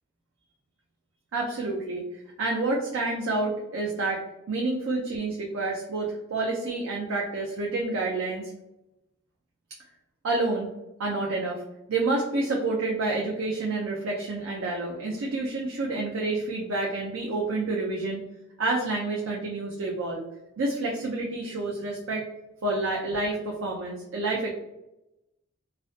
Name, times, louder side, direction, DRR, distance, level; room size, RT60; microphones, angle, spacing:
voice 1, 1.3-2.1 2.4-4.2 4.5-8.5 10.2-10.7 11.0-11.6 11.9-18.2 18.6-20.2 20.6-22.2 22.6-24.5, right 2 dB, 75° right, -2 dB, 0.4 m, -28 dB
2.4 x 2.2 x 2.4 m, 0.92 s
head